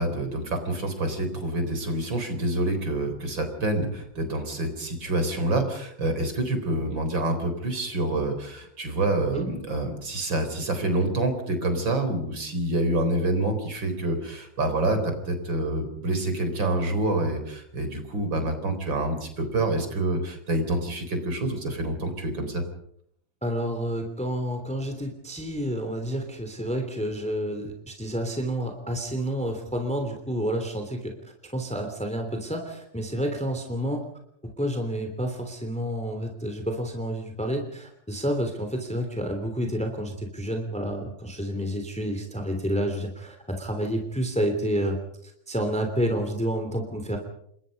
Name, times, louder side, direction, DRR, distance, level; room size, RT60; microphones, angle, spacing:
voice 1, 0.0-22.6, right 2 dB, 80° right, 7 dB, 4.8 m, -27 dB
voice 2, 23.4-31.1 31.5-34.0 34.6-45.0 45.5-47.2, equal, 5° left, 4 dB, 3.0 m, -29 dB
28.5 x 22.0 x 5.3 m, 0.70 s
omnidirectional pair, 2.0 m